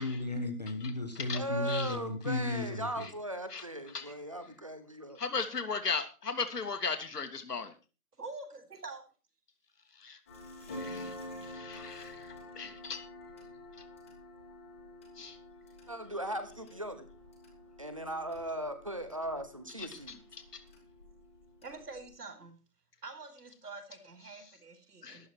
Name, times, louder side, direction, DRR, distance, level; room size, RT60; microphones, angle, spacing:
voice 1, 0.0-3.1, left 2 dB, 25° left, 4 dB, 1.2 m, -34 dB
voice 2, 1.3-5.2 15.9-17.1 17.8-20.2, right 1 dB, 20° right, 10 dB, 1.0 m, -38 dB
voice 3, 5.2-7.7 10.0-10.2 10.8-11.1 11.5-12.3 12.6-13.0 15.2-15.4 19.8-19.9 25.0-25.2, left 5 dB, 85° left, 7 dB, 2.4 m, -36 dB
voice 4, 8.2-9.0 11.8-11.9 21.6-22.6 23.0-25.3, right 3 dB, 80° right, 7 dB, 4.6 m, -46 dB
sound 1, 10.3-22.1, left 1 dB, 10° left, 1.6 m, -48 dB
13.5 x 11.0 x 4.5 m, 0.33 s
hypercardioid pair, 180°, 46 cm